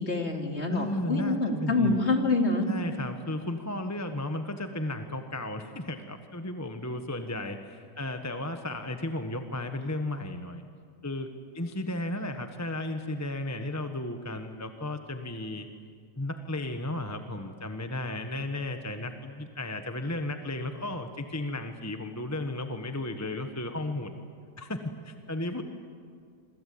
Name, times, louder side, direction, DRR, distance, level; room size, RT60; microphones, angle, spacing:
voice 1, 0.0-2.7, left 3 dB, 40° left, 3 dB, 2.8 m, -26 dB
voice 2, 0.7-2.0 2.7-10.6 11.0-15.7 16.2-24.1 24.6-24.8 25.0-25.6, left 1 dB, 10° left, 6 dB, 1.1 m, -34 dB
27.0 x 25.5 x 8.6 m, 2.1 s
omnidirectional pair, 1.9 m